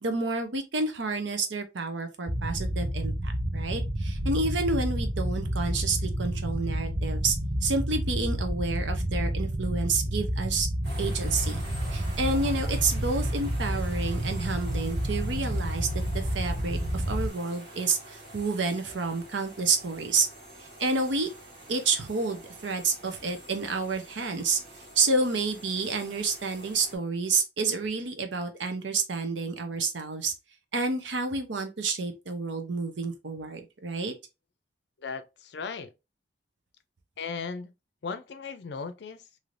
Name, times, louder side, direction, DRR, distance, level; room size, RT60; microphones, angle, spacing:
voice 1, 0.0-7.3 7.6-10.7 11.0-11.6 11.9-15.9 16.1-20.3 20.6-21.3 21.7-24.6 25.0-30.3 30.7-34.1, right 3 dB, 85° right, 0.7 m, -29 dB
sound 1, 2.3-17.3, equal, 25° right, 0.4 m, -30 dB
sound 2, 10.8-27.0, right 1 dB, 60° right, 1.5 m, -46 dB
voice 2, 35.0-35.9 37.2-37.7 38.0-39.2, left 5 dB, 70° left, 0.4 m, -36 dB
3.2 x 2.7 x 2.5 m
head